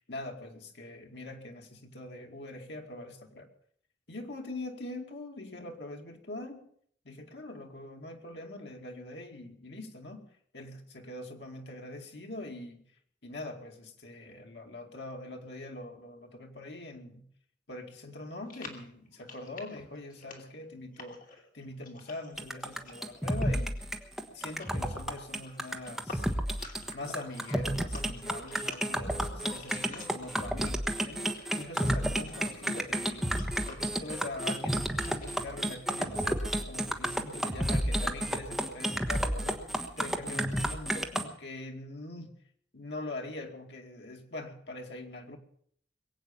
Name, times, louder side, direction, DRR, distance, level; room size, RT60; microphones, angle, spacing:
voice 1, 0.0-3.5 4.1-6.7 7.0-10.3 10.5-12.8 13.2-17.2 17.7-23.8 24.2-26.3 26.9-33.3 33.7-39.7 40.0-42.4 42.7-45.4, left 2 dB, 75° left, 3 dB, 2.4 m, -43 dB
sound 1, 18.5-30.7 31.0-35.7, left 3 dB, 50° left, 2.8 m, -50 dB
sound 2, 22.4-41.2, right 1 dB, ahead, 1.2 m, -31 dB
22.0 x 8.5 x 7.1 m, 0.64 s
head